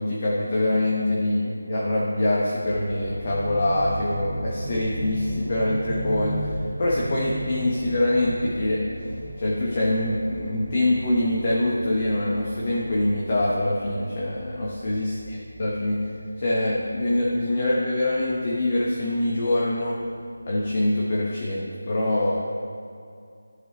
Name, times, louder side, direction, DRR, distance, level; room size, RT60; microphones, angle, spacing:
voice 1, 0.0-6.5 6.8-8.8 9.4-16.0 16.4-20.0 20.5-22.4, left 1 dB, 30° left, -5 dB, 1.0 m, -24 dB
sound 1, 2.6-20.5 20.9-21.0, right 1 dB, 45° right, 1.4 m, -36 dB
13.5 x 4.6 x 3.0 m, 2.4 s
figure-of-eight pair, 170°, 0 cm